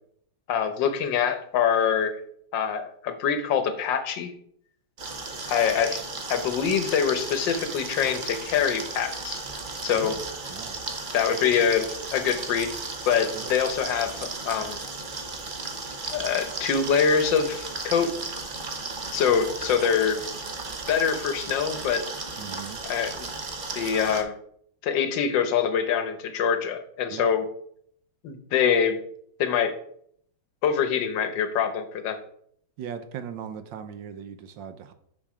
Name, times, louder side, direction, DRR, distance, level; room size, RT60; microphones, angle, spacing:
voice 1, 0.5-2.2 2.5-4.3 5.5-6.0 6.3-9.4 9.8-10.2 11.1-11.9 12.1-12.7 13.1-14.8 16.1-18.1 19.1-20.2 20.9-22.0 22.8-23.3 23.7-24.3 24.8-27.4 28.2-29.0 29.4-29.7 30.6-32.2, left 7 dB, 65° left, 9 dB, 1.4 m, -24 dB
sound 1, 5.0-24.2, right 3 dB, 55° right, 0.5 m, -35 dB
voice 2, 10.5-10.8 13.3-13.6 22.4-22.8 27.1-27.3 32.8-34.9, right 8 dB, 70° right, 10 dB, 1.2 m, -38 dB
6.3 x 6.2 x 4.9 m, 0.66 s
omnidirectional pair, 2.3 m